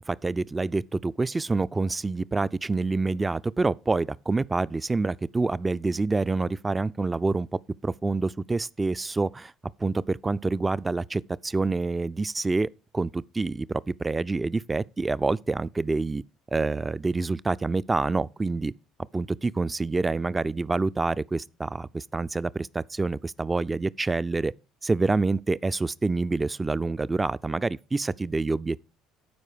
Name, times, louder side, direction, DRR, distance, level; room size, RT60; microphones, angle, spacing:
voice 1, 0.1-7.5 7.8-9.5 9.8-16.2 16.5-18.7 19.1-24.5 24.8-28.8, right 3 dB, 20° right, 0.3 m, -27 dB
12.0 x 4.9 x 4.9 m
hypercardioid pair, 60°, 0 cm